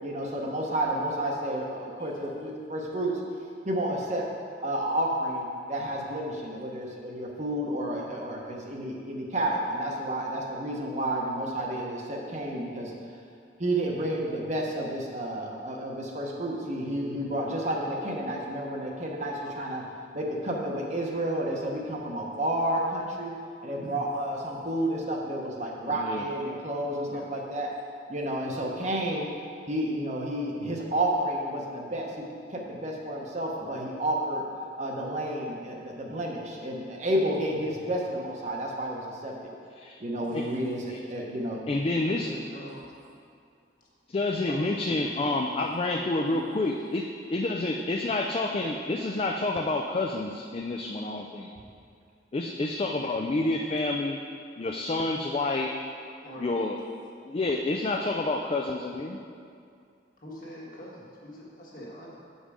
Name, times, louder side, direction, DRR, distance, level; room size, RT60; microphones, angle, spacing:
voice 1, 0.0-3.1 3.6-4.2 4.6-12.9 13.6-19.8 20.1-23.3 23.6-27.7 28.1-29.3 29.7-32.2 32.5-34.4 34.8-39.5 40.0-41.6, right 1 dB, 40° right, -1 dB, 0.9 m, -31 dB
voice 2, 23.7-24.0 27.0-27.4 40.2-40.5 42.0-43.2 43.8-43.9 44.5-45.8 46.2-46.6 56.2-56.5 60.2-62.1, equal, 45° left, -5 dB, 1.6 m, -44 dB
voice 3, 25.8-26.2 39.8-40.0 40.3-40.4 40.9-41.0 41.7-42.3 44.1-51.5 52.3-54.2 54.6-55.8 56.4-56.8 57.3-59.2, left 2 dB, 30° left, 2 dB, 0.3 m, -29 dB
7.4 x 5.4 x 4.9 m, 2.3 s
head